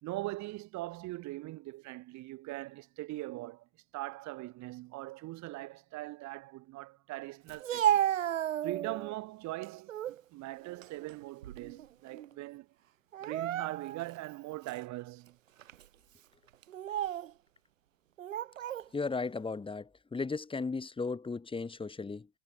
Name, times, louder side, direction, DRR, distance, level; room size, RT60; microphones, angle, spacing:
voice 1, 0.0-8.0 8.6-12.7 13.2-15.4, right 19 dB, 45° right, 5.0 m, -41 dB
Speech, 7.5-9.1 9.6-10.2 10.6-11.9 12.1-12.3 13.1-14.1 14.7-14.8 15.6-15.8 16.6-17.3 18.2-18.9, right 11 dB, 85° right, 0.9 m, -33 dB
voice 2, 18.9-22.3, left 4 dB, 15° left, 3.8 m, -36 dB
hypercardioid pair, 90°, 38 cm